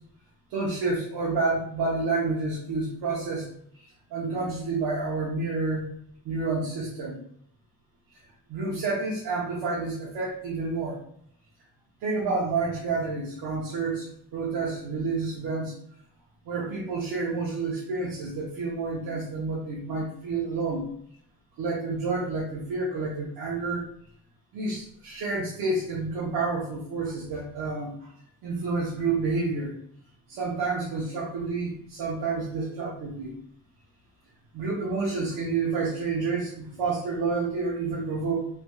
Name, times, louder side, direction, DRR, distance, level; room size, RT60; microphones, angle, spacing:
voice 1, 0.5-3.5 3.7-5.9 6.2-7.2 8.5-11.0 12.0-15.7 16.4-20.9 21.6-23.9 24.5-28.1 28.4-29.7 30.3-33.3 34.5-38.5, right 3 dB, 90° right, -5 dB, 0.9 m, -29 dB
3.3 x 2.8 x 2.3 m, 0.66 s
cardioid pair, 90°, 37 cm